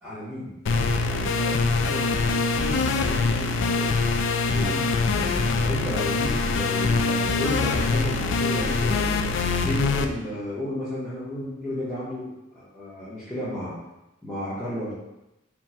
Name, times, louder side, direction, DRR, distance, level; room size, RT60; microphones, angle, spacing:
voice 1, 0.0-4.0 4.5-13.7 14.2-14.9, left 1 dB, 5° left, -14 dB, 1.0 m, -33 dB
sound 1, 0.7-10.1, left 4 dB, 65° left, 0.3 m, -24 dB
3.6 x 2.3 x 4.3 m, 0.94 s
head